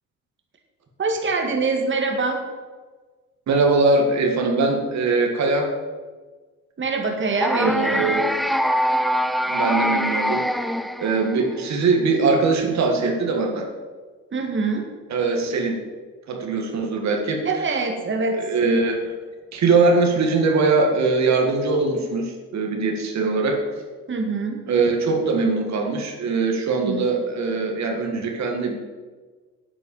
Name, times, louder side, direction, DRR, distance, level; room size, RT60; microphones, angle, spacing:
voice 1, 1.0-2.4 6.8-8.2 14.3-14.9 17.5-18.4 24.1-24.6 26.8-27.1, right 4 dB, 40° right, 2 dB, 1.8 m, -24 dB
voice 2, 3.5-5.7 7.5-8.3 9.5-10.5 11.0-13.7 15.1-15.8 16.3-17.4 18.3-19.2 19.5-23.6 24.7-28.8, right 3 dB, 65° right, 2 dB, 1.9 m, -21 dB
sound 1, 7.4-11.6, equal, ahead, 0.5 m, -23 dB
8.9 x 8.3 x 7.0 m, 1.4 s
cardioid pair, 90°, 30 cm